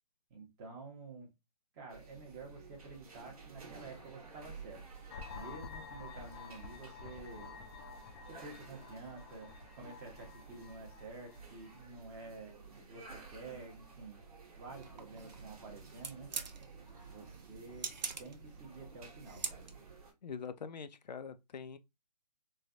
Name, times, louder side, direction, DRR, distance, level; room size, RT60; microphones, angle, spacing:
voice 1, 0.3-1.3 1.7-4.8 5.3-7.6 8.2-14.2 14.6-16.3 17.1-17.9 18.2-19.7, right 3 dB, 25° right, 0.9 m, -50 dB
sound 1, 1.9-20.1, right 4 dB, 60° right, 1.0 m, -54 dB
sound 2, 5.1-11.8, left 6 dB, 40° left, 0.4 m, -50 dB
sound 3, 14.7-20.0, right 5 dB, 90° right, 0.6 m, -45 dB
voice 2, 20.2-21.8, left 6 dB, 90° left, 0.5 m, -44 dB
3.2 x 2.2 x 2.5 m
hypercardioid pair, 150°, 21 cm